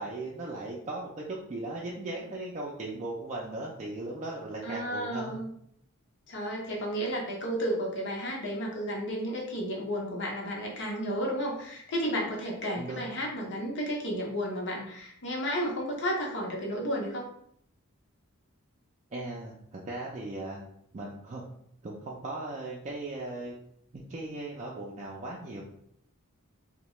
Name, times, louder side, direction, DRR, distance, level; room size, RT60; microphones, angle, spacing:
voice 1, 0.0-5.4 12.8-13.1 19.1-20.7 20.9-21.4 21.8-23.5 23.9-25.6, right 2 dB, 30° right, -4 dB, 0.4 m, -38 dB
voice 2, 4.6-5.5 6.3-17.3, equal, 55° left, -1 dB, 0.7 m, -32 dB
2.8 x 2.1 x 3.0 m, 0.70 s
head